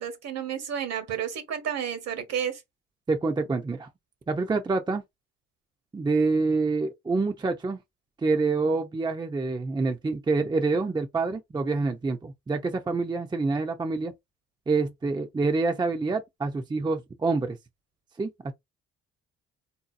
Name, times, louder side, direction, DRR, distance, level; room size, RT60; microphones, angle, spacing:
voice 1, 0.0-2.6, right 8 dB, 60° right, 1.2 m, -31 dB
voice 2, 3.1-3.9 4.3-5.0 5.9-7.8 8.2-14.1 14.7-17.6 18.2-18.5, right 3 dB, 15° right, 0.5 m, -27 dB
3.7 x 2.7 x 2.5 m
supercardioid pair, 75°, 30 cm